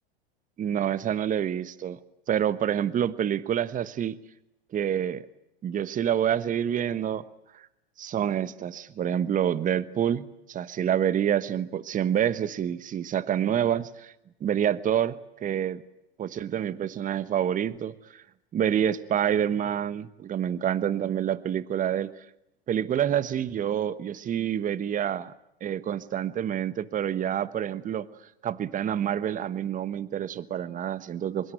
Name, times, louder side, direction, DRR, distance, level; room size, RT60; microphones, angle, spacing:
voice 1, 0.6-2.0 2.3-4.2 4.7-5.3 5.6-7.3 7.5-7.7 8.0-14.1 14.4-15.8 16.2-18.2 18.5-22.1 22.7-25.3 25.6-28.1 28.4-31.5, right 9 dB, 25° right, 16 dB, 1.2 m, -27 dB
24.0 x 22.5 x 9.1 m, 0.83 s
hypercardioid pair, 100°, 31 cm